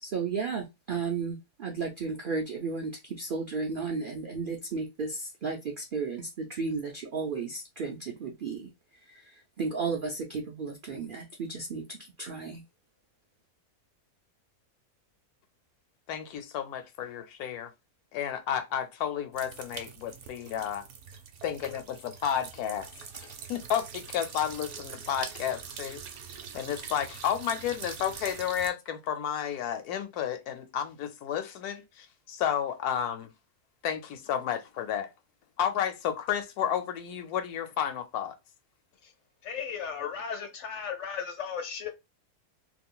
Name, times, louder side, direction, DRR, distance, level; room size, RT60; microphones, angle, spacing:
voice 1, 0.0-8.7 9.1-12.6, right 4 dB, 85° right, 0.4 m, -34 dB
voice 2, 16.1-17.7 18.1-20.8 21.4-26.0 26.5-33.3 33.8-35.1 35.6-38.4, left 9 dB, 80° left, 1.1 m, -32 dB
sound 1, 19.3-28.7, right 6 dB, 65° right, 0.8 m, -43 dB
voice 3, 39.4-41.9, left 7 dB, 60° left, 0.8 m, -35 dB
2.8 x 2.4 x 3.7 m
omnidirectional pair, 1.7 m